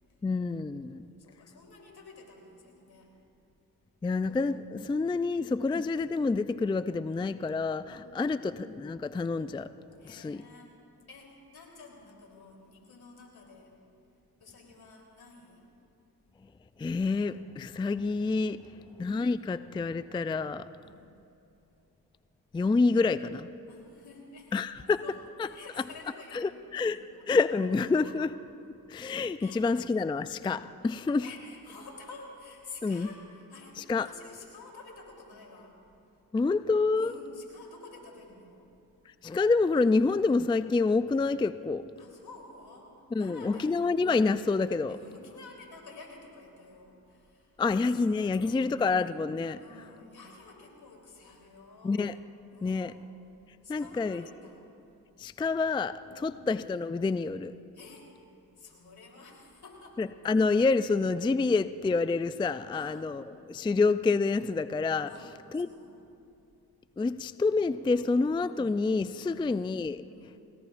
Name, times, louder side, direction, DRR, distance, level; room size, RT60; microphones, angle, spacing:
voice 1, 0.2-1.1 4.0-9.7 10.1-10.4 16.8-18.6 19.0-20.7 22.5-23.5 24.5-25.0 26.3-28.3 28.9-31.3 32.8-33.1 33.9-34.1 36.3-37.1 39.1-41.9 43.1-45.0 47.6-49.6 51.8-52.2 52.6-52.9 53.7-54.2 55.2-57.6 60.0-65.1 65.5-65.7 67.0-70.0, left 4 dB, 15° left, 14 dB, 0.3 m, -28 dB
voice 2, 0.7-3.1 5.8-6.0 7.8-8.4 10.0-10.7 11.1-13.7 14.4-15.7 18.5-19.0 20.7-21.1 23.7-24.5 24.8-25.2 25.4-28.2 29.4-29.9 31.2-35.7 36.9-38.7 42.0-43.8 44.9-47.6 48.2-48.9 49.6-52.0 52.5-53.1 53.6-54.6 56.1-56.5 57.7-58.1 58.6-60.0 62.7-63.2 65.1-65.3 65.5-66.0 67.9-68.2 69.2-69.5 70.1-70.4, left 3 dB, 70° left, 0 dB, 3.6 m, -51 dB
28.0 x 19.0 x 2.5 m, 2.8 s
supercardioid pair, 40°, 39 cm